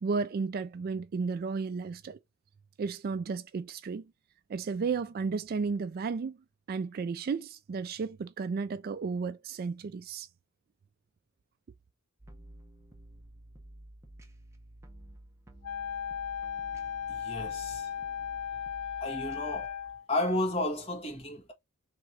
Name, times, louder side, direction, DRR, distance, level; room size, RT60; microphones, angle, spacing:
voice 1, 0.0-2.2 2.8-4.1 4.5-6.4 6.7-10.3, right 5 dB, 45° right, 0.3 m, -33 dB
sound 1, 12.2-19.7, right 1 dB, 15° right, 0.7 m, -52 dB
Wind instrument woodwind instrument, 15.6-20.1, left 8 dB, 90° left, 0.6 m, -36 dB
voice 2, 17.1-17.9 19.0-19.8 20.1-21.5, left 1 dB, 25° left, 1.7 m, -32 dB
3.7 x 3.0 x 4.5 m
head